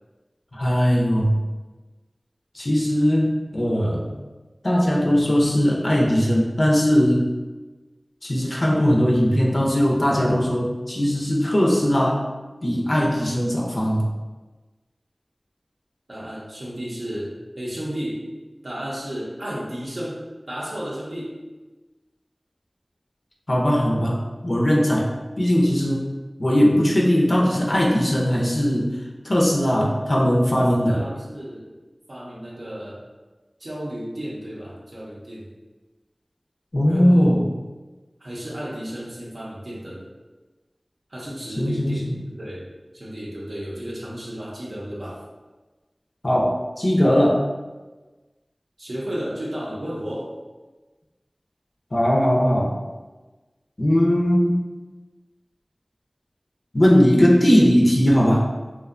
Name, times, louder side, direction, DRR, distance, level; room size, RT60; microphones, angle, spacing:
voice 1, 0.5-1.3 2.5-4.1 4.6-7.3 8.2-12.2 12.6-14.1 23.5-25.1 25.4-26.1 26.4-28.9 29.2-31.0 36.7-37.4 41.6-42.1 46.2-47.4 51.9-52.8 53.8-54.6 56.7-58.5, equal, 65° left, -2 dB, 0.4 m, -19 dB
voice 2, 16.1-18.2 18.6-21.4 30.5-31.7 32.1-33.0 33.6-35.5 36.9-37.4 38.2-40.1 41.1-42.7 42.9-45.2 48.8-50.3, equal, 80° right, -6 dB, 0.5 m, -33 dB
2.6 x 2.1 x 2.4 m, 1.2 s
wide cardioid pair, 40°, 0 cm